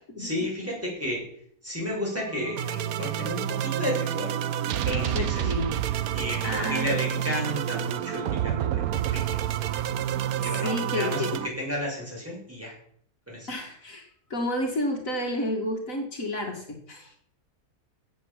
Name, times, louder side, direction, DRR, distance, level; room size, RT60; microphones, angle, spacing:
voice 1, 0.2-1.2 1.6-4.3 4.8-5.5 6.1-8.8 9.1-9.2 9.6-9.8 10.3-12.7 13.3-13.5, left 1 dB, 10° right, -3 dB, 6.4 m, -32 dB
sound 1, 2.1-11.5, right 10 dB, 70° right, 1.1 m, -29 dB
voice 2, 5.1-5.8 6.4-6.9 10.6-11.4 13.5-17.2, left 1 dB, 55° left, 2 dB, 2.4 m, -30 dB
13.5 x 8.2 x 7.2 m, 0.64 s
omnidirectional pair, 1.7 m